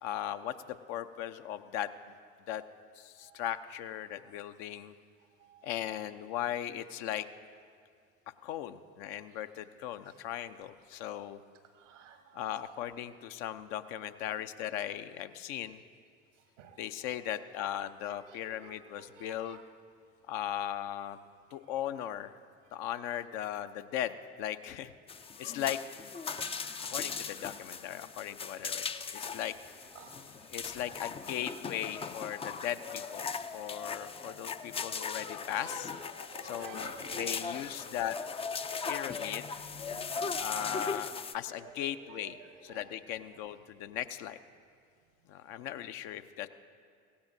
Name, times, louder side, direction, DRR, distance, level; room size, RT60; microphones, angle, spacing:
voice 1, 0.0-1.9 2.5-2.6 2.9-4.9 5.6-7.3 8.4-11.4 12.3-15.8 16.8-19.6 20.3-21.2 21.5-22.3 22.7-24.9 25.4-25.8 26.8-28.9 29.1-29.6 30.5-35.9 36.4-38.2 38.9-39.5 40.4-44.4 45.3-46.5, left 11 dB, 60° left, 10 dB, 0.7 m, -38 dB
voice 2, 11.9-12.2 16.6-16.8 18.3-18.7 19.1-19.6 26.3-27.2 30.0-30.3 36.1-37.5 37.9-38.0 41.6-41.7 42.1-42.3, right 5 dB, 75° right, 7 dB, 1.2 m, -51 dB
sound 1, 25.1-41.3, left 5 dB, 15° left, 0.4 m, -39 dB
17.0 x 16.0 x 2.7 m, 2.2 s
figure-of-eight pair, 60°, 37 cm